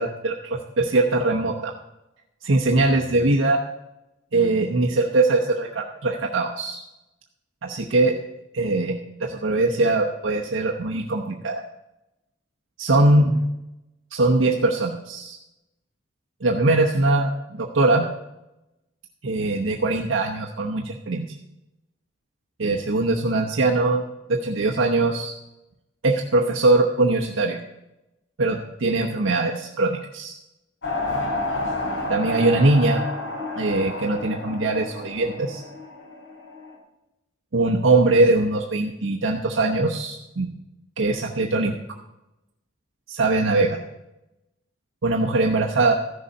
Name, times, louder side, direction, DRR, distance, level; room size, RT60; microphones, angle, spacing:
voice 1, 0.0-1.7 2.4-3.6 4.3-6.8 7.6-8.2 8.5-8.9 9.2-11.6 12.8-13.4 14.1-15.4 16.4-18.1 19.2-21.3 22.6-24.0 24.3-25.3 26.0-27.6 28.4-30.3 32.1-33.0 33.6-35.6 37.5-40.5 41.0-41.8 43.1-43.8 45.0-45.9, right 2 dB, 85° right, 0 dB, 0.9 m, -21 dB
sound 1, 30.8-36.7, left 2 dB, 80° left, 3.1 m, -30 dB
14.0 x 6.7 x 5.5 m, 0.93 s
head